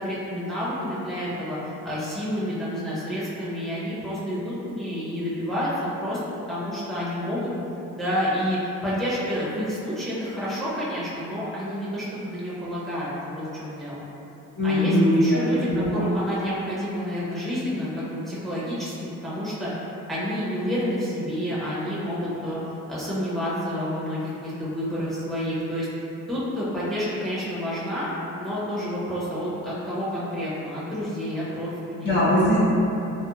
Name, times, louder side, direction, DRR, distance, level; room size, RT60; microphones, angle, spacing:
voice 1, 0.0-1.6 1.8-5.7 6.0-6.2 6.5-7.5 8.0-14.0 14.6-18.9 19.2-22.6 22.9-25.9 26.3-28.1 28.4-32.1 32.4-32.5, equal, ahead, -10 dB, 0.7 m, -29 dB
voice 2, 14.6-16.0 32.0-32.6, equal, 35° left, -9 dB, 0.8 m, -21 dB
2.9 x 2.1 x 2.3 m, 2.9 s
cardioid pair, 90°, 30 cm